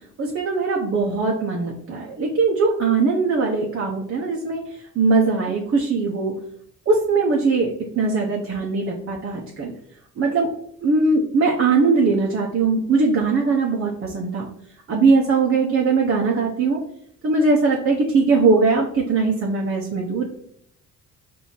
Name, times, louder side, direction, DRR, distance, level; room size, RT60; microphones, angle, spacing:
voice 1, 0.2-4.6 4.9-6.3 6.9-9.7 10.2-10.5 10.8-14.5 14.9-16.8 17.2-20.2, right 4 dB, 45° right, -1 dB, 0.8 m, -20 dB
4.3 x 2.7 x 4.3 m, 0.70 s
cardioid pair, 90°, 30 cm